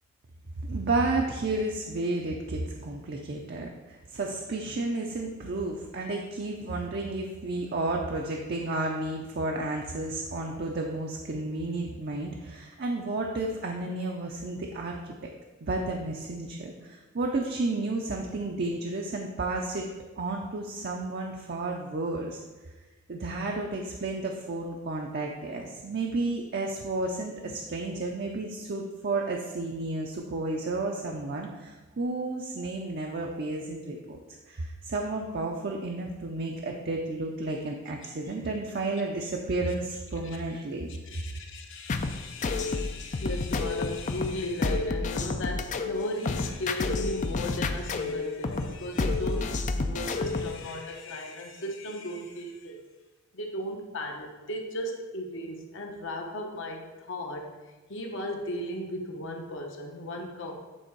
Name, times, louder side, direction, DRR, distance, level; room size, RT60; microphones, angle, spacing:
voice 1, 0.6-15.3 15.6-19.9 20.2-22.4 23.1-34.2 34.5-41.4, right 2 dB, 50° right, 0 dB, 0.6 m, -32 dB
voice 2, 41.0-52.8 53.3-57.5 57.9-60.6, left 1 dB, 60° left, 2 dB, 1.0 m, -36 dB
sound 1, 41.9-50.6, left 3 dB, 35° left, 0.4 m, -30 dB
9.1 x 3.6 x 4.6 m, 1.2 s
head